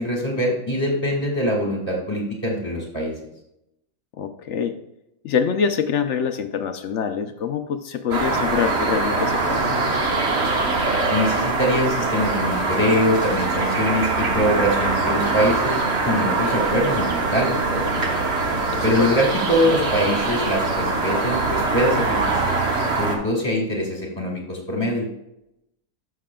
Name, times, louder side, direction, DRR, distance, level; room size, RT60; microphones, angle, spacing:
voice 1, 0.0-3.1 11.1-18.0 18.8-22.4 23.0-25.1, equal, 15° left, -1 dB, 1.6 m, -23 dB
voice 2, 4.2-4.8 5.2-9.6 18.7-19.1, left 7 dB, 65° left, 8 dB, 0.8 m, -25 dB
sound 1, 8.1-23.2, right 3 dB, 45° right, 1.3 m, -23 dB
Wind instrument woodwind instrument, 13.4-19.5, right 8 dB, 70° right, 0.4 m, -34 dB
12.5 x 5.8 x 2.3 m, 0.85 s
omnidirectional pair, 1.6 m